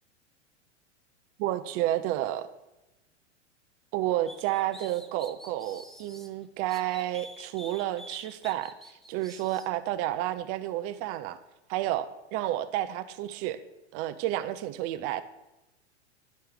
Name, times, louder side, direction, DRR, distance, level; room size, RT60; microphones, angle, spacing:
voice 1, 1.4-2.5 3.9-8.7 9.1-11.4 11.7-13.6 13.9-15.2, right 13 dB, 45° right, 0.6 m, -30 dB
sound 1, 4.3-6.3 6.7-9.7, equal, ahead, 0.3 m, -48 dB
11.5 x 4.2 x 3.7 m
hypercardioid pair, 100°, 35 cm